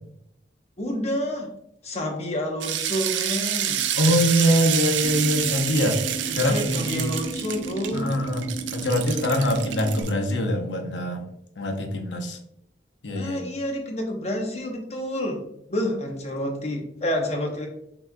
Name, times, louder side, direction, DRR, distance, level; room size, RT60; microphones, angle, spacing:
voice 1, 0.8-1.5 1.8-3.9 6.3-8.1 13.1-15.4 15.7-17.7, equal, 35° left, 2 dB, 0.8 m, -29 dB
sound 1, 2.6-10.1, right 10 dB, 85° right, 0.4 m, -28 dB
voice 2, 4.0-6.0 6.3-7.1 7.9-8.5 8.7-11.2 11.6-12.4 13.0-13.5, equal, 80° left, 4 dB, 0.7 m, -23 dB
sound 2, 5.0-10.0, right 3 dB, 65° right, 1.0 m, -35 dB
5.8 x 3.0 x 2.2 m, 0.76 s
head